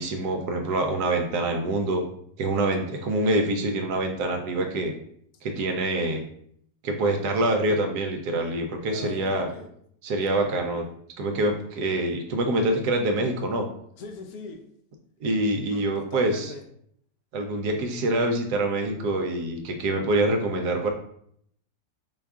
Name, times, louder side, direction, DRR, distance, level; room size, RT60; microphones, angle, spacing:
voice 1, 0.0-2.0 2.4-4.9 5.4-6.2 6.8-9.5 10.0-10.9 11.2-13.7 15.2-16.5 17.3-20.9, right 2 dB, 70° right, 3 dB, 1.1 m, -25 dB
voice 2, 8.9-9.7 14.0-14.6 15.7-16.6, left 3 dB, 65° left, 4 dB, 1.1 m, -41 dB
5.7 x 2.4 x 3.5 m, 0.68 s
omnidirectional pair, 1.9 m